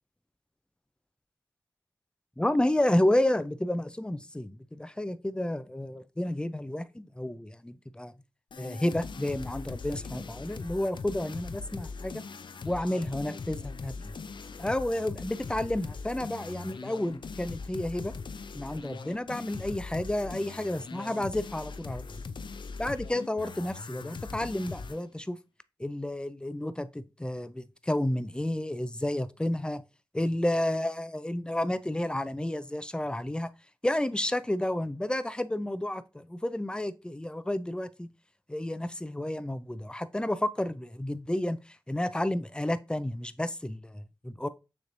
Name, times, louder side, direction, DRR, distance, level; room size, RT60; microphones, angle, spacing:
voice 1, 2.4-8.1 8.6-12.2 12.6-14.1 14.6-18.1 18.5-22.2 22.8-25.4 25.8-29.8 30.1-33.5 33.8-38.1 38.5-41.6 41.9-44.5, left 1 dB, 10° left, 0.5 m, -31 dB
sound 1, 8.5-25.0, left 4 dB, 65° left, 0.4 m, -41 dB
6.4 x 3.2 x 2.6 m
cardioid pair, 40°, 9 cm